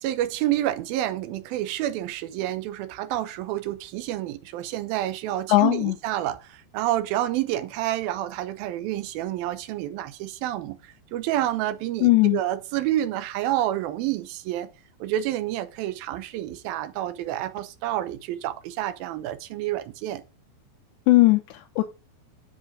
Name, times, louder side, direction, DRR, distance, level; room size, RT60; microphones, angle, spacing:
voice 1, 0.0-14.7 15.0-20.2, right 13 dB, 75° right, 2.3 m, -29 dB
voice 2, 5.5-5.9 12.0-12.4 21.1-21.8, left 19 dB, 85° left, 3.0 m, -18 dB
8.0 x 7.3 x 3.7 m
omnidirectional pair, 5.1 m